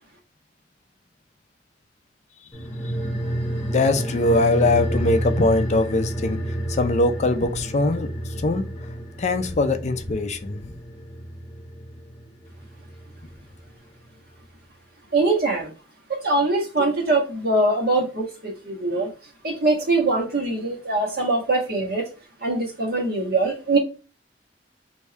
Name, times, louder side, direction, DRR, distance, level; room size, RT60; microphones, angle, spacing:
sound 1, 2.5-13.4 13.7-13.8, right 1 dB, 10° left, 1.1 m, -30 dB
voice 1, 3.7-8.1 8.4-8.7 9.2-10.7 16.8-16.9, left 2 dB, 40° left, 0.4 m, -22 dB
voice 2, 15.1-15.7 16.1-19.1 19.4-22.1 22.4-23.8, right 2 dB, 55° right, 1.5 m, -22 dB
3.4 x 2.7 x 4.2 m
head